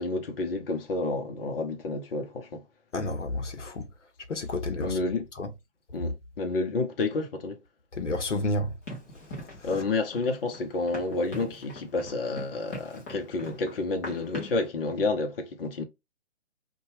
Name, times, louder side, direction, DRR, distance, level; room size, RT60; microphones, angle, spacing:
voice 1, 0.0-2.6 4.8-5.3 5.9-7.6 9.6-15.8, left 3 dB, 55° left, 0.7 m, -30 dB
voice 2, 2.9-3.9 4.3-5.0 5.4-5.5 7.9-8.7 9.3-9.7, left 2 dB, 85° left, 0.8 m, -31 dB
Run, 8.9-14.7, left 1 dB, 10° left, 0.5 m, -42 dB
2.7 x 2.3 x 2.8 m
figure-of-eight pair, 140°, 35 cm